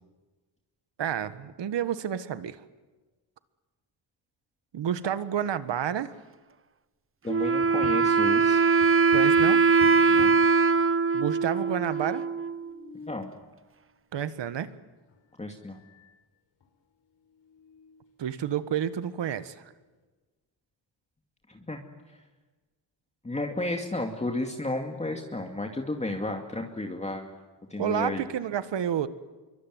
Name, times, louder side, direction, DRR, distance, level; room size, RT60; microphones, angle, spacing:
voice 1, 1.0-2.6 4.7-6.1 9.1-9.6 11.1-12.2 14.1-14.7 18.2-19.6 27.8-29.1, right 9 dB, 60° right, 13 dB, 1.6 m, -30 dB
voice 2, 7.2-8.7 10.1-10.3 13.0-13.3 15.4-15.8 21.5-21.8 23.2-27.3 27.7-28.2, left 2 dB, 15° left, 2 dB, 2.4 m, -32 dB
Wind instrument woodwind instrument, 7.3-12.8, right 4 dB, 25° right, 0.9 m, -22 dB
sound 1, 7.6-8.5 8.8-10.6 11.3-11.4 11.6-11.7 12.4-13.3 15.1-15.2 15.7-16.2 16.6-16.7 17.2-18.1, left 4 dB, 65° left, 5.4 m, -46 dB
26.0 x 23.5 x 9.4 m, 1.3 s
cardioid pair, 105°, 47 cm